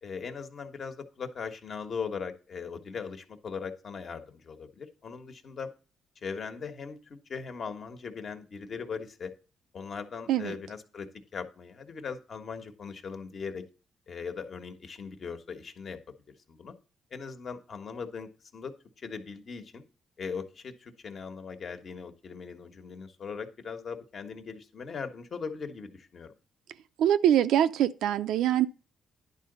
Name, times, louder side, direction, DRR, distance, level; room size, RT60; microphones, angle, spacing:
voice 1, 0.0-5.7 6.2-9.3 9.7-13.7 14.1-16.0 16.5-16.7 17.1-19.8 20.2-26.3, left 5 dB, 50° left, 1.4 m, -39 dB
voice 2, 27.0-28.7, right 11 dB, 80° right, 0.5 m, -24 dB
10.5 x 4.0 x 6.7 m
cardioid pair, 90°, 0 cm